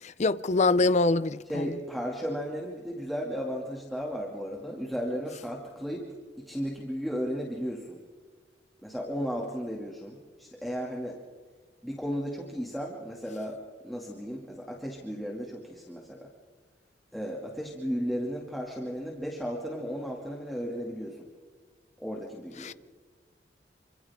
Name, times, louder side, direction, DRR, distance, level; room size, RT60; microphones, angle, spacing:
voice 1, 0.0-1.7 22.6-22.7, left 3 dB, 40° left, 0.6 m, -25 dB
voice 2, 1.5-6.1 6.4-8.0 8.8-11.2 11.8-13.6 13.8-16.3 17.1-21.2 22.0-22.7, equal, ahead, 2.4 m, -34 dB
28.0 x 26.0 x 3.7 m
head